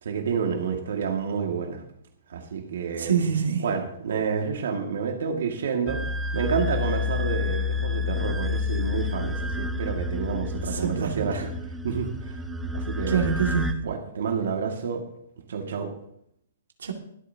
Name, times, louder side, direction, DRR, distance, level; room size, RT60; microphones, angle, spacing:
voice 1, 0.0-1.8 2.3-3.2 3.6-6.0 6.3-11.5 11.8-12.4 12.7-13.3 13.8-15.0 15.5-15.9, right 6 dB, 75° right, 2 dB, 2.1 m, -29 dB
voice 2, 3.0-3.6 10.7-11.4 13.1-13.8 16.8-16.9, right 7 dB, 90° right, 2 dB, 2.3 m, -25 dB
sound 1, 5.9-13.7, left 3 dB, 5° right, 0.9 m, -29 dB
23.0 x 8.6 x 2.9 m, 0.73 s
hypercardioid pair, 145°, 0 cm